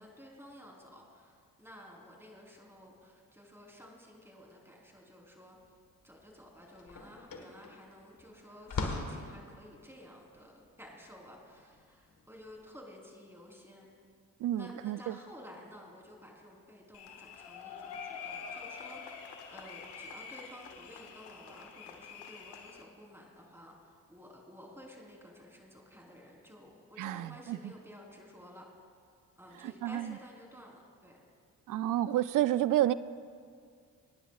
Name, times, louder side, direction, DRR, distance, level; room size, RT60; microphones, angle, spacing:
voice 1, 0.0-5.6 6.0-13.9 14.5-28.7 29.4-31.2, equal, 5° right, -1 dB, 3.7 m, -53 dB
sound 1, 5.7-5.9 6.2-12.7, left 3 dB, 55° left, 1.6 m, -42 dB
voice 2, 14.4-15.2 27.0-27.7 29.6-30.2 31.7-32.9, right 13 dB, 50° right, 16 dB, 0.5 m, -30 dB
sound 2, 16.9-22.8, left 6 dB, 75° left, 1.1 m, -46 dB
23.5 x 9.9 x 2.4 m, 2.1 s
hypercardioid pair, 45°, 40 cm